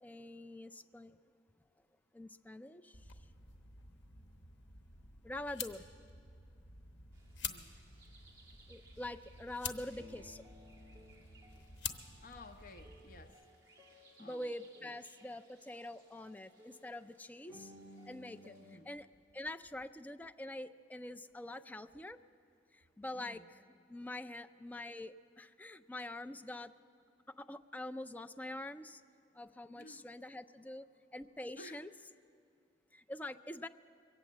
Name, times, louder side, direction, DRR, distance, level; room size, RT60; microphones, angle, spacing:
voice 1, 0.0-1.2 2.1-3.1 5.2-5.8 8.7-10.4 14.2-17.7 18.1-19.1 19.3-22.2 22.7-23.4 23.9-26.7 27.3-29.0 29.3-30.9 31.1-31.9 32.9-33.7, left 1 dB, 10° left, 8 dB, 0.3 m, -45 dB
sound 1, 2.9-13.3, left 5 dB, 80° left, 0.9 m, -48 dB
sound 2, 7.1-18.8, equal, 20° right, 2.2 m, -60 dB
voice 2, 12.2-13.4 14.2-14.5 14.8-15.0 18.6-18.9 23.1-23.5 29.7-30.1 31.6-31.8, left 2 dB, 50° left, 7 dB, 0.7 m, -54 dB
22.5 x 8.6 x 7.3 m, 2.4 s
head